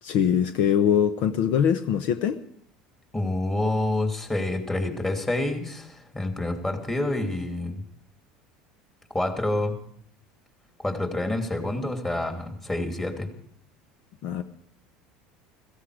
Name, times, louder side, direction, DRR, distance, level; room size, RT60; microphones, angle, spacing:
voice 1, 0.0-2.4 14.2-14.4, left 8 dB, 65° left, 10 dB, 0.8 m, -22 dB
voice 2, 3.1-7.8 9.1-9.8 10.8-13.3, left 2 dB, 15° left, 4 dB, 2.8 m, -28 dB
16.0 x 15.0 x 4.9 m, 0.67 s
hypercardioid pair, 90°, 3 cm